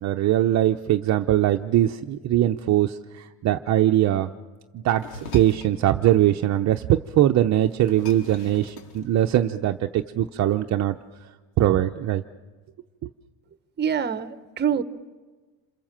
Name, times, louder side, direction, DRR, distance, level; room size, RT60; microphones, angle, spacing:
voice 1, 0.0-4.3 4.7-11.0 11.6-12.2, right 12 dB, 45° right, 5 dB, 0.8 m, -21 dB
sound 1, 5.0-5.8 7.1-7.2 7.5-9.6, left 4 dB, 70° left, 4.3 m, -43 dB
voice 2, 13.8-14.8, right 8 dB, 25° right, 12 dB, 1.1 m, -25 dB
27.5 x 27.0 x 7.5 m, 1.3 s
cardioid pair, 140°, 39 cm